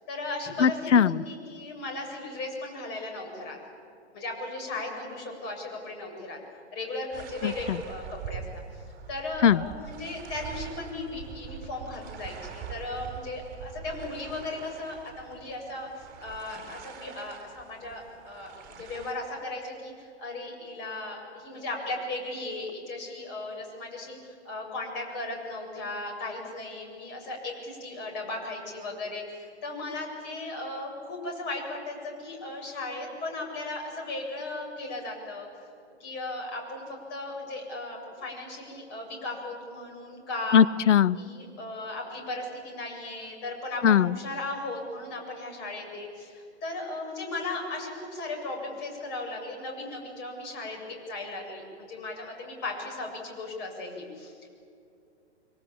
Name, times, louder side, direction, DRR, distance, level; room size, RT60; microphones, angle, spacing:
voice 1, 0.1-3.6 4.1-6.4 6.7-8.5 9.1-35.7 36.0-40.6 41.2-54.5, left 2 dB, 30° left, 1 dB, 7.5 m, -36 dB
voice 2, 0.6-1.2 7.4-7.8 9.4-9.6 40.5-41.2 43.8-44.1, left 8 dB, 90° left, 19 dB, 0.8 m, -20 dB
sound 1, 7.1-19.1, right 7 dB, 25° right, 5.1 m, -43 dB
25.0 x 24.5 x 8.6 m, 2.5 s
hypercardioid pair, 140°, 35 cm